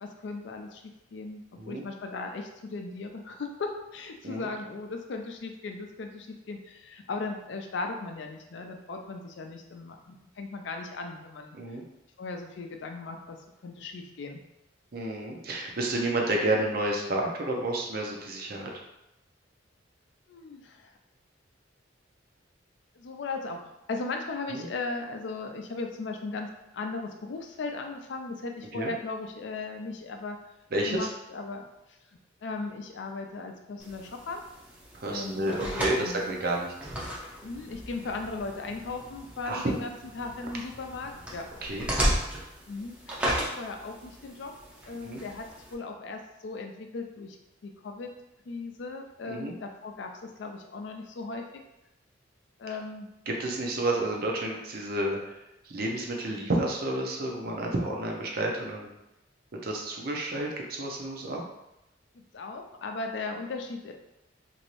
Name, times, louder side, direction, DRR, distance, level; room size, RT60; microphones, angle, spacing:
voice 1, 0.0-11.6 12.2-13.4 13.6-14.4 20.3-20.9 23.0-23.6 23.9-30.4 30.9-31.7 32.4-34.4 35.1-36.2 37.4-42.0 42.7-44.5 44.8-47.4 47.6-48.1 48.5-51.6 52.6-53.1 62.1-63.9, left 3 dB, 65° left, 4 dB, 0.4 m, -37 dB
voice 2, 14.9-18.7 24.5-24.7 28.7-28.9 30.7-31.1 34.9-36.7 39.5-39.7 41.6-41.9 45.0-45.2 49.3-49.5 53.3-55.4 55.6-58.9 59.6-61.4, right 1 dB, 50° right, 0 dB, 0.6 m, -30 dB
sound 1, 33.8-45.7, equal, 5° right, 0.5 m, -35 dB
3.0 x 2.6 x 3.0 m, 0.89 s
head